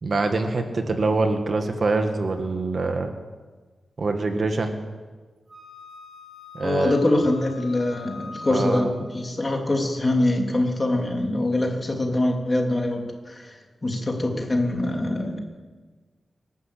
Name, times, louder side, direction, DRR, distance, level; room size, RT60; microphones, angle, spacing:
voice 1, 0.0-3.1 4.0-4.8 6.5-6.9 8.5-8.9, right 3 dB, 45° right, 5 dB, 1.9 m, -24 dB
Wind instrument woodwind instrument, 5.5-9.1, left 3 dB, 25° right, 7.0 m, -42 dB
voice 2, 6.6-8.9 9.1-15.4, left 1 dB, 25° left, 2 dB, 3.3 m, -24 dB
26.5 x 12.5 x 8.5 m, 1.4 s
wide cardioid pair, 150°, 0 cm